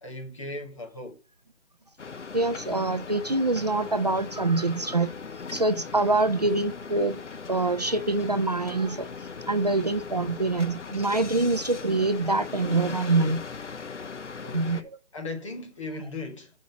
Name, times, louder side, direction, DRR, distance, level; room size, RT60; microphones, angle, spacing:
voice 1, 0.0-1.2 14.3-16.5, left 2 dB, 25° left, 1.4 m, -38 dB
sound 1, 2.0-14.8, left 5 dB, 85° left, 1.0 m, -39 dB
voice 2, 2.3-5.1 5.5-7.2 7.5-9.1 9.5-13.4 14.5-15.0, right 2 dB, 35° right, 0.4 m, -25 dB
6.3 x 5.4 x 5.8 m
figure-of-eight pair, 165°, 35 cm